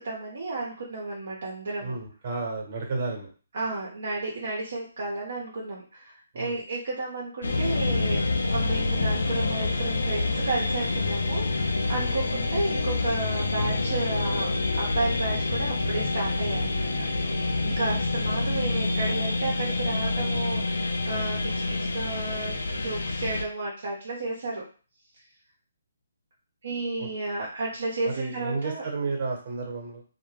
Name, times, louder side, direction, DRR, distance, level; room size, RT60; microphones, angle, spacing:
voice 1, 0.0-1.9 3.5-8.2 8.5-21.4 21.9-24.6 26.6-28.8, right 2 dB, 60° right, -3 dB, 0.7 m, -32 dB
voice 2, 1.8-3.3 6.3-6.5 11.9-12.1 27.0-27.1 28.0-30.0, right 3 dB, 45° right, 1 dB, 1.0 m, -32 dB
sound 1, 7.4-23.4, left 2 dB, 75° left, 0.4 m, -27 dB
2.1 x 2.1 x 3.1 m, 0.38 s
figure-of-eight pair, 145°, 0 cm